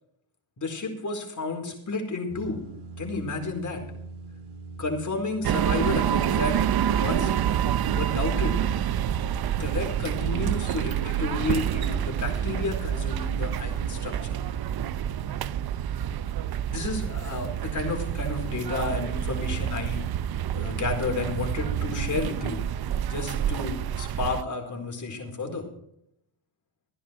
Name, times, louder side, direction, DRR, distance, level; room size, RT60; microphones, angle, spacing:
voice 1, 0.6-2.6 3.0-3.8 4.8-6.6 7.0-7.3 7.9-8.6 9.5-14.4 16.7-20.0 20.5-22.6 23.1-25.7, left 3 dB, 35° left, 2 dB, 4.4 m, -31 dB
sound 1, 2.3-16.8, right 3 dB, 90° right, 3.0 m, -45 dB
sound 2, 5.4-24.4, right 10 dB, 50° right, 0.7 m, -28 dB
15.5 x 10.5 x 4.6 m, 0.75 s
cardioid pair, 85°, 48 cm